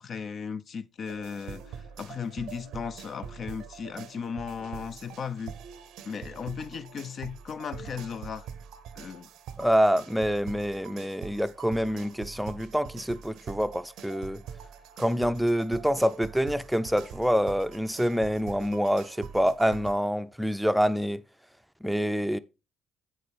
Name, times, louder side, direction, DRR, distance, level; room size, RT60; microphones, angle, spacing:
voice 1, 0.0-5.5 6.0-8.5 9.0-9.3, left 6 dB, 50° left, 0.5 m, -36 dB
sound 1, 1.1-20.0, right 8 dB, 65° right, 0.6 m, -44 dB
voice 2, 9.6-14.4 15.0-21.2 21.8-22.4, equal, 5° right, 0.5 m, -26 dB
8.7 x 6.5 x 3.4 m
hypercardioid pair, 50°, 0 cm